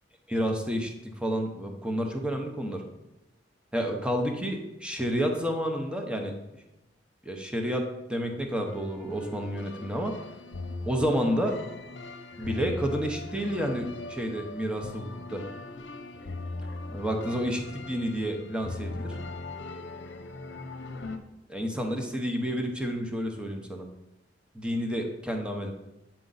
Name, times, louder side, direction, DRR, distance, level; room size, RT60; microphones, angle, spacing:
voice 1, 0.3-2.8 3.7-6.3 7.2-10.1 10.9-11.5 12.4-15.4 16.9-19.2 21.5-23.9 24.5-25.7, equal, 5° right, 3 dB, 0.7 m, -30 dB
sound 1, 8.7-21.2, left 2 dB, 80° left, 0.7 m, -40 dB
8.5 x 4.5 x 4.0 m, 0.96 s
head